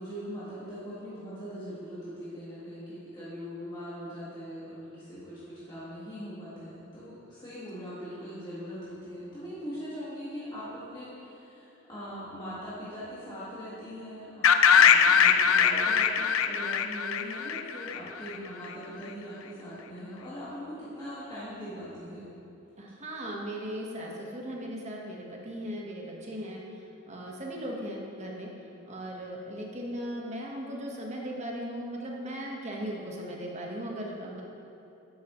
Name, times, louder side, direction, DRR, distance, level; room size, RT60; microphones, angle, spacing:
voice 1, 0.0-22.3, equal, 20° left, -11 dB, 1.8 m, -41 dB
sound 1, 14.4-18.3, left 7 dB, 75° left, 0.5 m, -21 dB
voice 2, 22.8-28.5 28.9-34.4, equal, 35° right, -2 dB, 1.3 m, -37 dB
11.5 x 8.4 x 3.1 m, 2.9 s
head